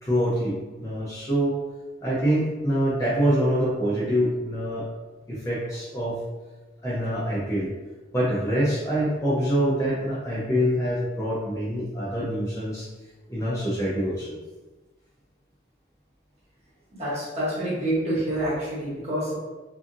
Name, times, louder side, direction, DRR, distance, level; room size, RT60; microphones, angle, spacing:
voice 1, 0.0-1.6 2.0-4.9 5.3-6.2 6.8-7.7 8.1-12.9 13.3-14.4, equal, 15° left, -8 dB, 0.5 m, -25 dB
voice 2, 17.0-19.4, right 1 dB, 30° right, -8 dB, 1.0 m, -27 dB
2.6 x 2.5 x 2.5 m, 1.2 s
head